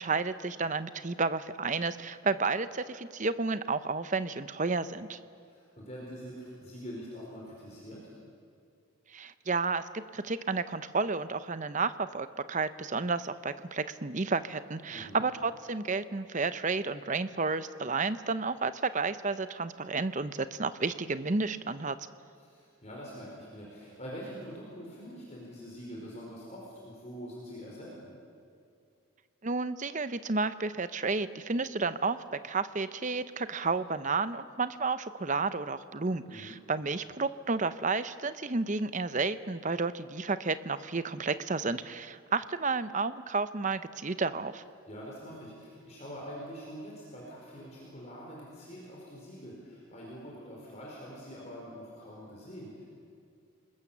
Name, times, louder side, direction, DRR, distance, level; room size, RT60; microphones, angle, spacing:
voice 1, 0.0-5.2 9.1-9.9 10.1-21.9 29.4-44.6, right 4 dB, 35° right, 13 dB, 0.7 m, -31 dB
voice 2, 5.3-8.1 14.9-15.2 22.4-28.1 36.2-36.6 44.9-52.8, equal, 30° left, -4 dB, 4.4 m, -45 dB
29.0 x 20.5 x 7.3 m, 2.4 s
head